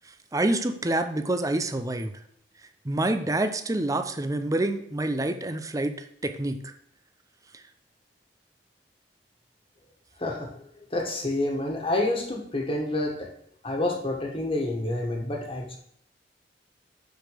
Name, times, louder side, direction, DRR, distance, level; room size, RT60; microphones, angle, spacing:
voice 1, 0.3-2.2 2.8-6.7 7.5-7.6, right 1 dB, 20° right, 8 dB, 0.7 m, -27 dB
voice 2, 10.9-13.3 13.6-15.8, left 2 dB, 30° left, 1 dB, 1.8 m, -28 dB
6.4 x 5.1 x 6.8 m, 0.69 s
head